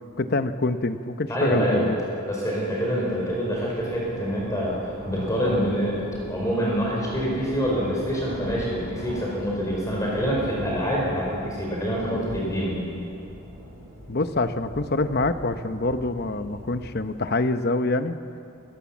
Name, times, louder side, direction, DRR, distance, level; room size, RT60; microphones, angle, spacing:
voice 1, 0.2-2.0 14.1-18.2, left 2 dB, 45° left, 10 dB, 0.9 m, -25 dB
voice 2, 1.3-1.9 2.3-4.8 5.1-12.8, equal, 15° left, -4 dB, 4.8 m, -26 dB
sound 1, 2.8-17.3, equal, 75° right, 5.1 m, -40 dB
29.0 x 16.0 x 7.3 m, 2.7 s
head